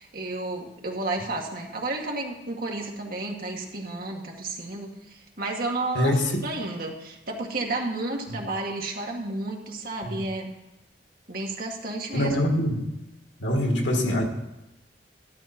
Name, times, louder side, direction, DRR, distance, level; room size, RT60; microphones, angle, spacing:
voice 1, 0.0-10.5 11.3-12.4, right 2 dB, 55° right, 0 dB, 2.0 m, -32 dB
voice 2, 5.9-6.4 10.0-10.2 12.1-12.9 13.4-14.2, left 1 dB, 85° left, 2 dB, 2.1 m, -24 dB
12.5 x 12.5 x 4.4 m, 0.96 s
head